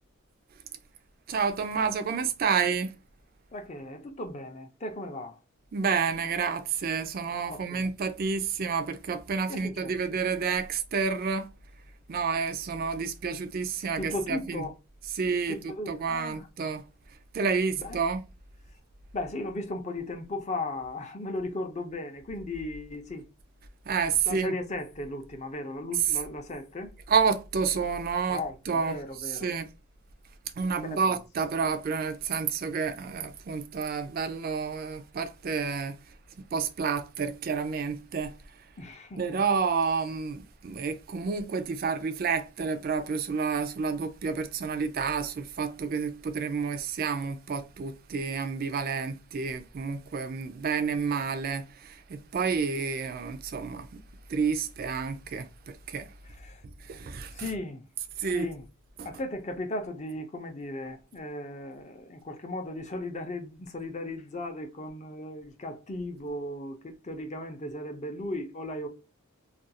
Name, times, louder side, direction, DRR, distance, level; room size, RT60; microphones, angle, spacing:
voice 1, 1.3-2.9 5.7-11.5 12.1-14.6 15.2-15.6 15.9-16.8 17.3-18.2 23.9-24.5 27.1-29.0 29.4-29.7 30.6-36.0 36.5-38.4 39.2-54.0 54.3-56.1 56.8-57.4 58.2-58.5 59.0-59.1, right 5 dB, 40° right, 0.3 m, -29 dB
voice 2, 3.5-5.4 7.5-7.9 9.5-10.0 14.0-14.7 15.5-16.5 17.8-18.0 19.1-23.3 24.3-26.9 28.3-29.5 30.8-31.2 38.8-39.3 56.3-56.6 57.3-57.9 58.2-58.7 59.0-68.9, left 1 dB, 30° left, 0.5 m, -36 dB
2.4 x 2.3 x 2.7 m
head